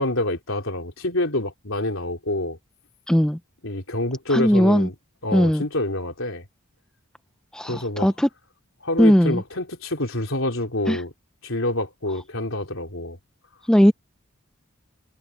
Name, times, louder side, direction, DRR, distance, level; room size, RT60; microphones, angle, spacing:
voice 1, 0.0-2.6 3.6-4.9 5.2-6.4 7.6-8.1 8.8-11.1 11.4-13.2, left 1 dB, 65° left, 3.7 m, -27 dB
voice 2, 3.1-3.4 4.3-4.9 5.3-5.6 7.5-8.3 9.0-9.4 10.9-11.0 13.7-13.9, equal, 5° left, 0.4 m, -18 dB
head